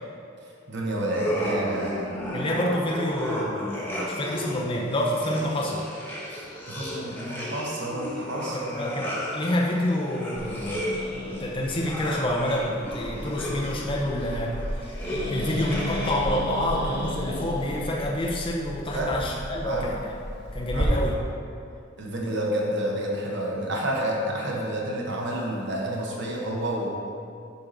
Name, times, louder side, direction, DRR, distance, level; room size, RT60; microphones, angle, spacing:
voice 1, 0.7-2.1 6.4-9.0 18.9-19.3 19.6-19.9 20.7-20.9 22.0-26.9, right 1 dB, 60° right, -2 dB, 1.1 m, -29 dB
sound 1, 1.0-16.4, equal, 10° left, 1.0 m, -34 dB
voice 2, 2.3-5.8 8.7-10.9 11.3-15.0 15.3-20.2 20.5-21.2, left 1 dB, 25° left, -2 dB, 0.6 m, -28 dB
Growling, 10.4-20.9, left 1 dB, 55° left, 1.2 m, -34 dB
7.1 x 4.7 x 4.0 m, 2.5 s
head